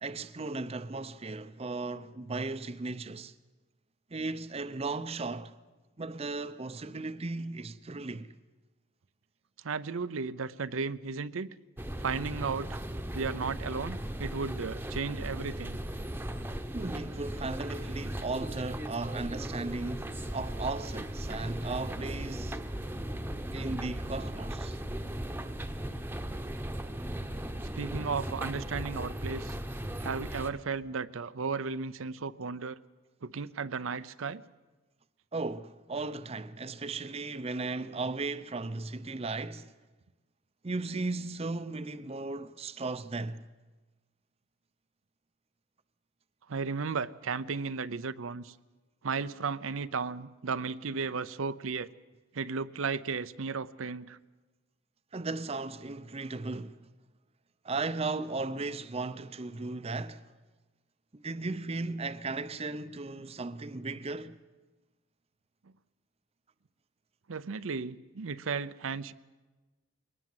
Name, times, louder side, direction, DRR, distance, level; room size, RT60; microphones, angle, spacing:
voice 1, 0.0-3.3 4.1-5.6 6.0-8.3 16.7-22.6 23.5-24.8 35.3-39.7 40.6-43.4 55.1-56.9 57.6-60.3 61.1-64.4, right 3 dB, 30° right, 0.6 m, -36 dB
voice 2, 9.6-11.5 12.0-12.8 13.1-15.8 27.8-29.6 30.0-32.8 33.2-34.4 46.5-48.5 49.0-51.9 52.3-54.2 67.3-69.1, right 5 dB, 75° right, 0.6 m, -34 dB
sound 1, 11.8-30.5, right 1 dB, 10° right, 1.0 m, -37 dB
22.5 x 19.0 x 7.8 m
head